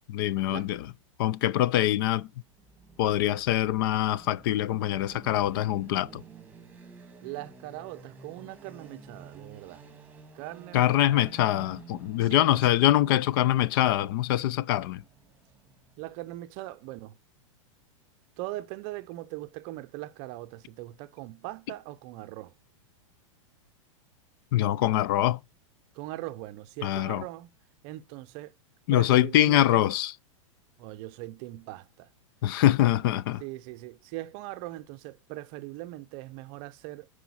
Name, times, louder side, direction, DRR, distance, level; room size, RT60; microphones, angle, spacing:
voice 1, 0.1-0.9 1.2-2.3 3.0-6.2 10.7-15.0 24.5-25.4 26.8-27.2 28.9-30.1 32.4-33.4, left 13 dB, 45° left, 0.5 m, -24 dB
sound 1, 2.5-16.4, right 5 dB, 10° right, 1.7 m, -52 dB
voice 2, 7.2-9.8 10.3-11.3 12.2-12.8 16.0-17.2 18.4-22.5 25.9-27.5 27.8-28.5 28.9-29.8 30.8-32.1 33.4-37.1, right 17 dB, 35° right, 0.6 m, -40 dB
10.5 x 5.0 x 7.1 m
supercardioid pair, 160°, 17 cm